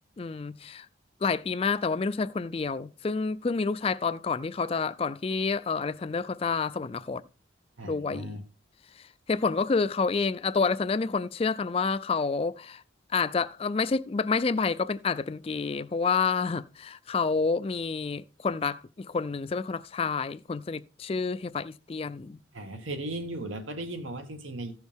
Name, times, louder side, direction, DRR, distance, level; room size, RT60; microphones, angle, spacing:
voice 1, 0.2-0.9 1.2-7.2 7.8-8.4 9.0-12.8 13.1-22.4, left 4 dB, 30° left, 0.3 m, -29 dB
voice 2, 7.8-8.4 22.5-24.7, right 1 dB, 85° right, 1.5 m, -36 dB
14.5 x 6.3 x 3.5 m
head